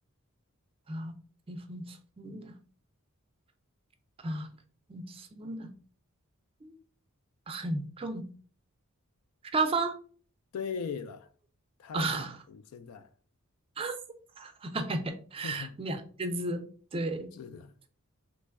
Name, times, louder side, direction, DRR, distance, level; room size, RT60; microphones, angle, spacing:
voice 1, 1.5-2.5 4.2-4.5 4.9-5.7 6.6-6.7 7.5-8.3 9.5-9.9 11.9-12.3 13.8-14.0 14.4-16.6 16.9-17.3, right 2 dB, 25° right, 0.4 m, -33 dB
voice 2, 10.5-11.3 11.8-13.1 15.4-15.7 17.3-17.7, left 6 dB, 75° left, 0.3 m, -39 dB
3.1 x 2.2 x 3.4 m
head